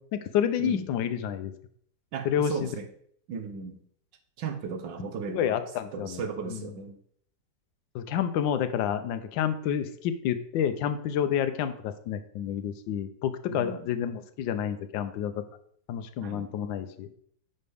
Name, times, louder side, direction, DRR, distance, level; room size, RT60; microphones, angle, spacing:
voice 1, 0.0-1.5 2.2-2.7 5.3-6.2 6.5-6.6 7.9-15.4 15.9-17.1, left 9 dB, 85° left, 9 dB, 1.4 m, -29 dB
voice 2, 2.1-2.9 3.3-3.8 4.4-5.6 5.9-7.0 13.5-13.9 16.2-16.5, right 5 dB, 75° right, 7 dB, 1.6 m, -36 dB
9.5 x 5.5 x 3.4 m, 0.64 s
omnidirectional pair, 2.0 m